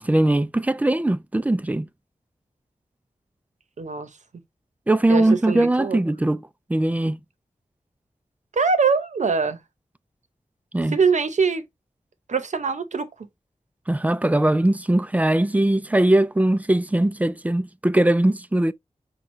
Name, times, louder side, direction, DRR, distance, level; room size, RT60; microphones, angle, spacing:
voice 1, 0.0-1.9 4.9-6.4 6.7-7.2 10.7-11.0 13.9-18.7, right 1 dB, 10° right, 0.3 m, -20 dB
voice 2, 3.8-4.1 5.1-6.0 8.5-9.6 10.9-11.6 12.3-13.1, right 5 dB, 70° right, 0.8 m, -23 dB
6.1 x 2.3 x 3.1 m
wide cardioid pair, 80°, 13 cm